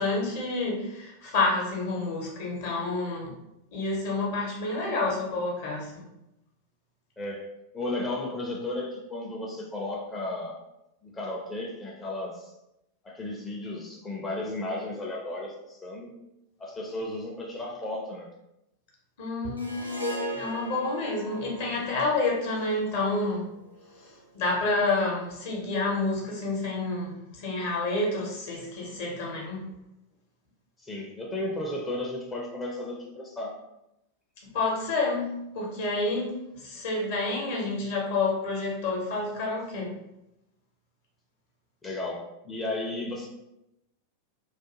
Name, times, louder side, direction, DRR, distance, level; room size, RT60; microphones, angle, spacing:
voice 1, 0.0-3.3 3.7-6.1 19.2-23.5 24.0-29.8 34.5-40.0, left 3 dB, 55° left, -3 dB, 0.7 m, -29 dB
voice 2, 7.2-10.6 11.0-12.5 13.0-16.1 16.6-18.3 30.8-33.6 41.8-43.3, left 2 dB, 15° left, -1 dB, 0.4 m, -34 dB
Harp, 19.6-24.0, right 1 dB, 90° right, 0.4 m, -38 dB
2.4 x 2.2 x 2.8 m, 0.88 s
figure-of-eight pair, 90°, 0 cm